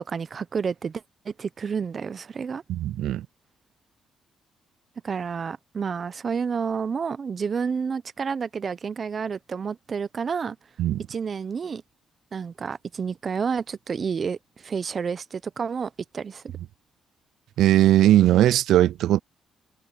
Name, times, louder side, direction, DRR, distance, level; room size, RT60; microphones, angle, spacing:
voice 1, 0.0-2.6 5.0-10.6 11.1-11.8 12.3-16.4, right 6 dB, 45° right, 0.7 m, -30 dB
voice 2, 2.7-3.3 10.8-11.0 17.6-19.2, right 13 dB, 80° right, 0.3 m, -19 dB
cardioid pair, 90°, 0 cm